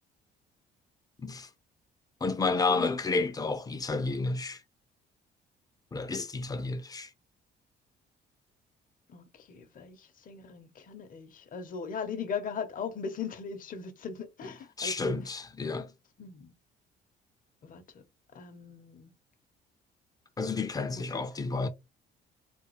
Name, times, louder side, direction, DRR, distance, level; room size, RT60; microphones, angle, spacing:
voice 1, 1.2-1.5 2.2-4.6 5.9-7.1 14.8-15.9 20.4-21.7, left 3 dB, 20° left, 0.6 m, -31 dB
voice 2, 2.4-2.9 9.1-15.2 16.2-16.5 17.6-18.0 18.3-19.1 20.9-21.2, left 6 dB, 45° left, 0.9 m, -39 dB
3.5 x 2.3 x 3.1 m
cardioid pair, 110°, 19 cm